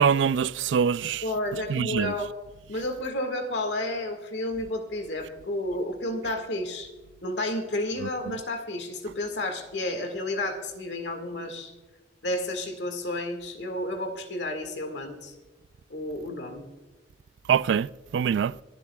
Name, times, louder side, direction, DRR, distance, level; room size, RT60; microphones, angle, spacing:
voice 1, 0.0-1.2 1.7-2.1 17.5-17.9 18.1-18.5, right 7 dB, 90° right, 0.3 m, -23 dB
voice 2, 1.2-2.3 2.7-6.9 7.2-11.7 12.2-15.3 15.9-16.6, left 1 dB, 75° left, 1.9 m, -31 dB
25.5 x 12.0 x 2.4 m
head